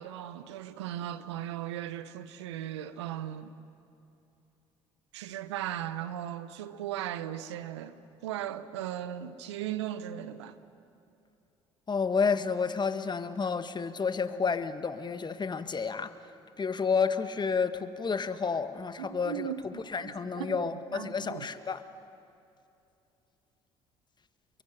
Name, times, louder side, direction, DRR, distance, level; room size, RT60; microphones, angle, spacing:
voice 1, 0.0-3.5 5.1-10.6 19.0-21.5, right 11 dB, 85° right, 0.9 m, -37 dB
voice 2, 11.9-16.1 16.6-21.8, left 5 dB, 30° left, 1.5 m, -30 dB
29.0 x 23.0 x 7.9 m
hypercardioid pair, 55°, 14 cm